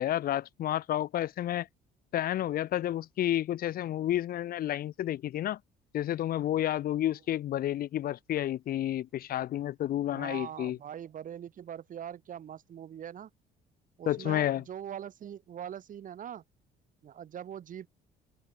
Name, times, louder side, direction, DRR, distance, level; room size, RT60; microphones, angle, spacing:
voice 1, 0.0-1.7 2.1-5.6 5.9-10.8 14.1-14.6, left 12 dB, 60° left, 1.3 m, -30 dB
voice 2, 10.1-13.3 14.0-16.4 17.0-17.9, right 9 dB, 50° right, 4.7 m, -42 dB
cardioid pair, 110°, 17 cm